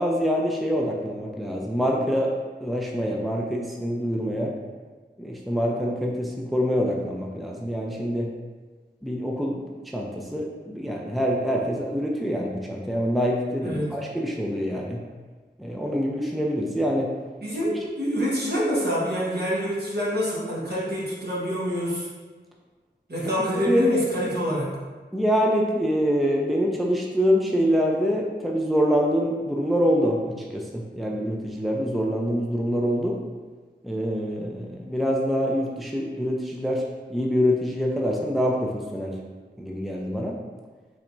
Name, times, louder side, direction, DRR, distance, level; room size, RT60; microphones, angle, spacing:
voice 1, 0.0-4.5 5.2-8.3 9.0-9.7 9.9-15.0 15.6-17.1 23.6-24.0 25.1-33.2 33.8-36.8 37.1-39.2 39.6-40.4, equal, ahead, -1 dB, 0.6 m, -25 dB
voice 2, 13.6-13.9 17.4-22.1 23.1-24.8, equal, 60° right, -6 dB, 1.5 m, -26 dB
5.8 x 3.4 x 2.6 m, 1.4 s
wide cardioid pair, 50°, 19 cm